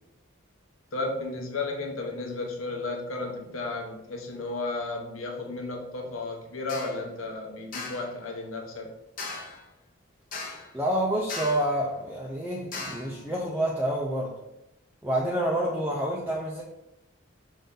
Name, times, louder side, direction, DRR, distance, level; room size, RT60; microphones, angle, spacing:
voice 1, 0.9-8.9, left 3 dB, 85° left, 2 dB, 0.9 m, -33 dB
sound 1, 6.7-7.0 7.7-8.1 9.2-9.6 10.3-10.8 11.3-11.8 12.7-13.2, left 3 dB, 40° left, 0.7 m, -37 dB
voice 2, 10.7-14.3 15.0-16.6, right 1 dB, 10° right, -3 dB, 0.4 m, -28 dB
5.5 x 2.6 x 3.6 m, 0.88 s
head